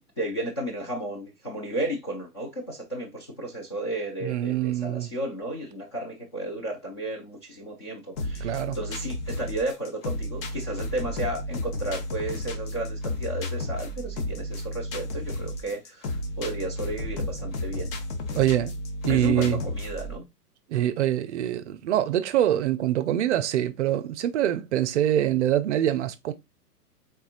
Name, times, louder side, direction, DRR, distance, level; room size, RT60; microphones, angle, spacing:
voice 1, 0.0-17.9 19.1-20.3, right 1 dB, 20° left, 0.3 m, -33 dB
voice 2, 4.2-5.1 8.4-8.8 18.3-18.7 19.0-19.6 20.7-26.3, right 12 dB, 50° right, 0.5 m, -24 dB
sound 1, 8.2-20.2, left 1 dB, 40° left, 0.8 m, -32 dB
4.1 x 3.6 x 2.4 m
hypercardioid pair, 130°, 47 cm